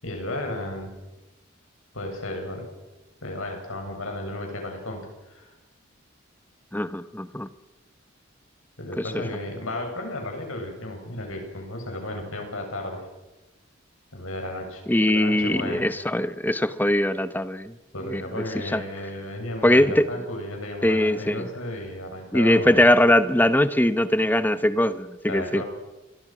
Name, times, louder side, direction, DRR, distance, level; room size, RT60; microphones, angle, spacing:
voice 1, 0.0-0.9 1.9-2.7 3.2-5.5 8.8-13.0 14.1-15.9 17.9-22.8 25.3-25.6, left 1 dB, 90° left, 3 dB, 7.8 m, -34 dB
voice 2, 6.7-7.5 9.0-9.2 14.9-17.7 18.0-18.8 19.6-20.1 20.8-21.5 22.3-25.6, left 1 dB, 10° left, 13 dB, 0.9 m, -21 dB
29.5 x 23.5 x 6.2 m, 1.0 s
head